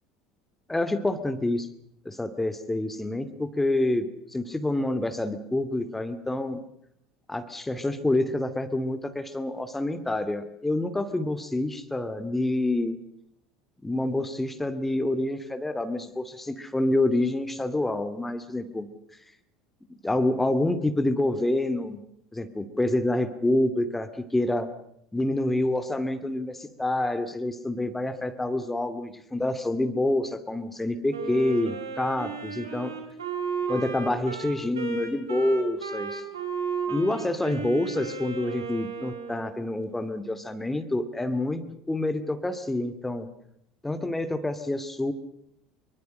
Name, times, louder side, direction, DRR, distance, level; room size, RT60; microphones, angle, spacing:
voice 1, 0.7-1.7 2.0-6.6 7.3-12.9 13.8-18.9 19.9-22.0 22.3-24.7 25.1-33.0 33.7-36.2 36.9-43.3 43.8-45.1, left 1 dB, 10° left, 10 dB, 2.4 m, -27 dB
Wind instrument woodwind instrument, 31.1-39.6, right 6 dB, 75° right, 4.6 m, -34 dB
25.0 x 24.0 x 6.5 m, 0.75 s
figure-of-eight pair, 70°, 2 cm